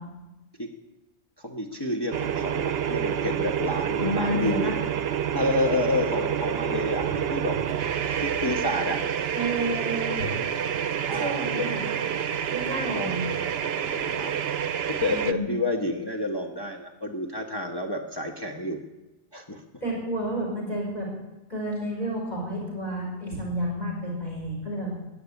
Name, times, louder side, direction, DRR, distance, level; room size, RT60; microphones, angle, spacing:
voice 1, 1.4-4.7 5.3-7.6 8.2-9.0 11.0-11.7 12.9-13.1 13.8-14.3 14.9-18.8 19.3-19.6, left 2 dB, 20° left, 1 dB, 1.3 m, -29 dB
sound 1, 2.1-15.3, right 8 dB, 60° right, 0.9 m, -28 dB
voice 2, 4.0-4.7 7.1-7.2 9.3-10.3 11.2-11.8 12.5-13.2 15.1-15.5 19.8-21.1 21.5-24.9, equal, 40° left, -2 dB, 5.6 m, -30 dB
20.5 x 6.9 x 9.6 m, 1.0 s
omnidirectional pair, 1.2 m